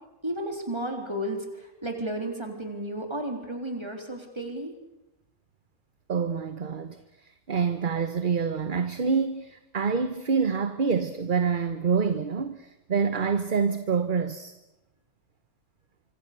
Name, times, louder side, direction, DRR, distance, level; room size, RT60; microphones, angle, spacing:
voice 1, 0.2-4.7, right 1 dB, 20° right, 3.8 m, -33 dB
voice 2, 6.1-14.5, right 5 dB, 40° right, 1.1 m, -27 dB
25.5 x 25.5 x 6.8 m
omnidirectional pair, 1.4 m